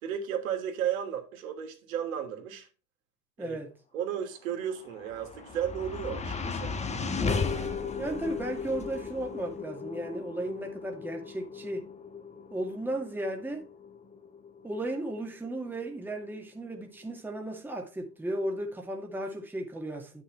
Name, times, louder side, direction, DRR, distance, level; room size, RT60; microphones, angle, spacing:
voice 1, 0.0-2.7 3.4-3.6 3.9-6.7 7.5-8.1, right 9 dB, 60° right, 3.0 m, -34 dB
voice 2, 3.4-3.7 8.0-11.9 12.5-13.7 14.6-20.2, right 1 dB, 5° right, 2.1 m, -35 dB
sound 1, 4.7-17.0, left 5 dB, 15° left, 1.4 m, -36 dB
11.0 x 6.6 x 3.3 m
figure-of-eight pair, 85°, 46 cm